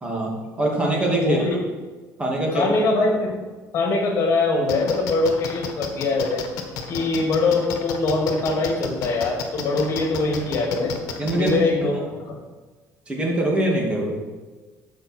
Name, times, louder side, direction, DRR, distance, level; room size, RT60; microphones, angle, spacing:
voice 1, 0.0-0.3 0.6-1.4 2.2-2.7 11.2-11.6 11.9-12.0 13.1-14.2, right 1 dB, 20° right, -2 dB, 2.4 m, -23 dB
voice 2, 1.2-1.6 2.5-3.4 3.7-6.4 6.9-11.0 11.3-12.4, left 3 dB, 45° left, 1 dB, 2.6 m, -22 dB
sound 1, 4.7-11.5, left 7 dB, 70° left, 1.4 m, -32 dB
13.0 x 5.4 x 4.5 m, 1.3 s
cardioid pair, 130°, 6 cm